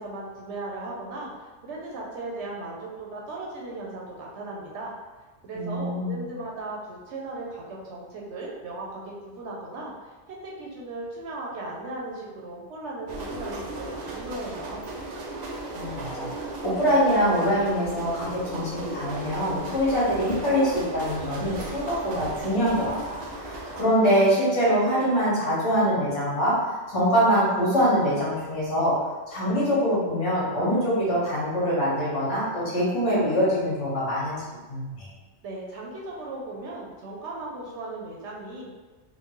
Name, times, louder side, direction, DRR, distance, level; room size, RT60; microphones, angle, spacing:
voice 1, 0.0-4.9 5.4-10.1 10.4-14.8 35.4-38.7, right 2 dB, 65° right, -3 dB, 0.9 m, -37 dB
voice 2, 5.5-6.2 15.7-26.5 26.9-28.9 29.3-35.1, equal, 65° left, -8 dB, 1.6 m, -24 dB
sound 1, 13.1-23.8, right 2 dB, 90° right, 0.3 m, -36 dB
3.8 x 2.2 x 3.0 m, 1.3 s
omnidirectional pair, 1.3 m